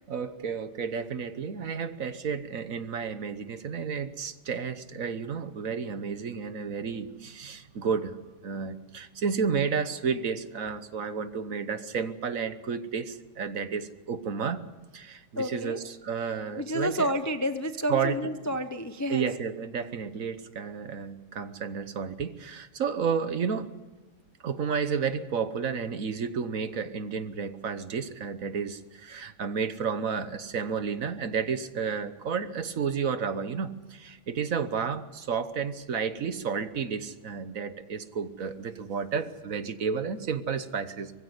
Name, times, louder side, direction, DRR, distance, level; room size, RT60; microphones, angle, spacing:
voice 1, 0.1-8.2 8.4-14.6 14.9-17.1 17.9-18.2 19.1-23.7 24.4-41.1, right 6 dB, 55° right, 12 dB, 1.4 m, -31 dB
voice 2, 15.3-15.8 16.6-19.3, equal, 15° left, 9 dB, 0.6 m, -30 dB
22.0 x 15.5 x 9.8 m, 1.2 s
omnidirectional pair, 1.8 m